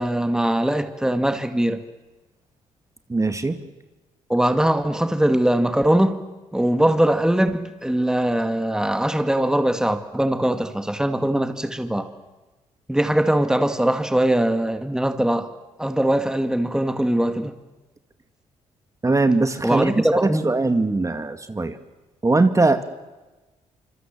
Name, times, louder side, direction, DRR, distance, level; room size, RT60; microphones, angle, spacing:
voice 1, 0.0-1.8 4.3-6.2 6.5-12.1 12.9-15.5 15.8-17.6 19.6-20.5, right 1 dB, 5° right, 2.1 m, -21 dB
voice 2, 3.1-3.6 19.0-19.9 20.2-21.8 22.2-23.0, right 3 dB, 25° right, 2.1 m, -21 dB
26.0 x 25.5 x 7.6 m
supercardioid pair, 60°, 13 cm